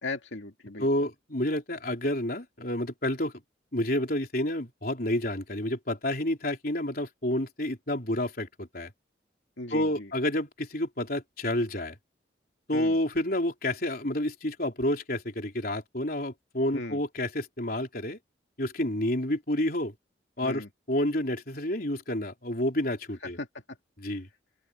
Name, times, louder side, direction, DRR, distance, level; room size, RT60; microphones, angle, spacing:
voice 1, 0.0-0.9 9.6-10.1 12.7-13.0 16.7-17.0 20.4-20.7 23.2-23.8, left 2 dB, 85° left, 2.2 m, -37 dB
voice 2, 0.8-3.3 3.7-8.9 9.7-12.0 12.7-18.2 18.6-19.9 20.4-23.4 24.0-24.3, left 1 dB, 50° left, 4.1 m, -29 dB
open air
head